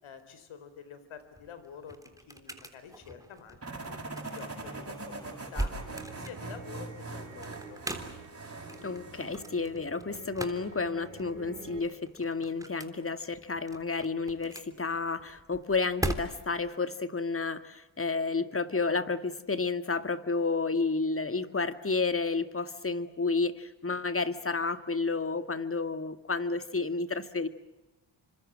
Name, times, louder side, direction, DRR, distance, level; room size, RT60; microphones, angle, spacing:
voice 1, 0.0-3.6 3.9-5.7 6.1-7.8 8.7-9.0, left 7 dB, 85° left, 11 dB, 4.4 m, -48 dB
sound 1, 1.2-16.7, right 1 dB, 5° right, 3.5 m, -41 dB
sound 2, 3.6-9.4, right 2 dB, 30° right, 7.4 m, -42 dB
sound 3, 5.8-11.8, right 5 dB, 80° right, 6.1 m, -48 dB
voice 2, 8.8-27.5, left 4 dB, 30° left, 11 dB, 2.0 m, -31 dB
28.0 x 25.5 x 7.6 m, 1.0 s
cardioid pair, 75°, 47 cm